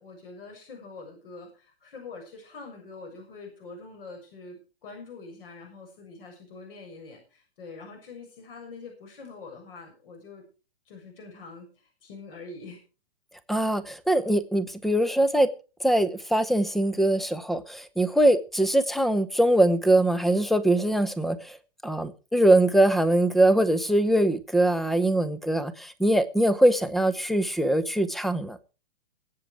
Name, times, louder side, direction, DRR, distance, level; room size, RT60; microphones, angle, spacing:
voice 1, 0.0-10.4 10.9-12.8, left 3 dB, 60° left, 7.0 m, -44 dB
voice 2, 13.5-15.5 15.8-21.6 21.8-28.6, right 1 dB, ahead, 0.7 m, -22 dB
21.5 x 8.7 x 4.8 m
hypercardioid pair, 140°, 32 cm